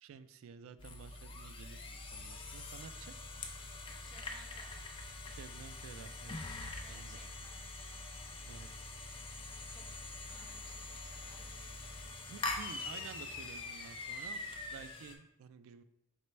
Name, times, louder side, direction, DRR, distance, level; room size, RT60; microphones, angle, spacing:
voice 1, 0.0-3.1 5.3-6.4 6.9-7.7 8.4-8.9 12.3-14.4 14.7-15.8, right 6 dB, 70° right, 12 dB, 0.3 m, -52 dB
sound 1, 0.8-15.2, left 2 dB, 25° left, 0.4 m, -44 dB
voice 2, 4.0-4.8 6.8-8.0 9.7-9.8 10.3-11.6, equal, ahead, -6 dB, 1.1 m, -61 dB
sound 2, 8.1-14.9, equal, 15° right, 1.5 m, -64 dB
4.4 x 3.3 x 3.1 m, 0.84 s
head